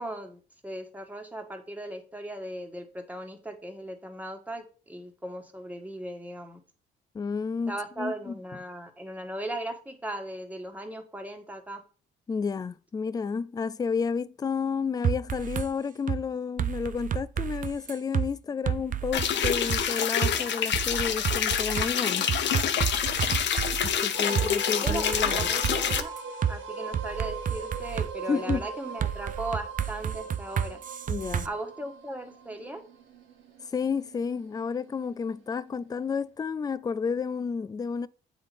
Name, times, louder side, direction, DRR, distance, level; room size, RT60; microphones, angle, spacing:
voice 1, 0.0-6.6 7.7-11.8 24.3-24.6 24.8-26.1 26.5-30.8 31.4-32.8, right 1 dB, 10° right, 1.5 m, -38 dB
voice 2, 7.1-8.4 12.3-22.3 23.8-25.5 28.3-28.7 31.1-31.5 33.7-38.1, left 5 dB, 20° left, 0.3 m, -31 dB
sound 1, 15.0-15.7 16.1-16.2 16.6-18.3 18.7-19.8 20.2-20.3 20.7-24.0 24.4-24.5 24.9-26.5 26.9-28.1 28.5-28.6 29.0-31.5, right 9 dB, 45° right, 0.5 m, -30 dB
sound 2, 19.1-26.0, left 8 dB, 65° left, 0.8 m, -27 dB
sound 3, 24.1-35.3, right 3 dB, 80° right, 1.6 m, -40 dB
8.0 x 3.8 x 5.1 m
cardioid pair, 90°, 20 cm